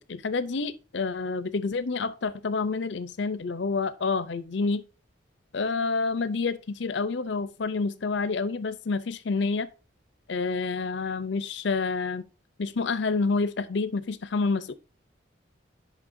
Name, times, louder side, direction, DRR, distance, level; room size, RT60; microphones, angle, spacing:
voice 1, 0.0-4.8 5.5-9.7 10.3-12.3 12.6-14.7, left 4 dB, 65° left, 0.5 m, -28 dB
9.8 x 5.5 x 2.6 m
head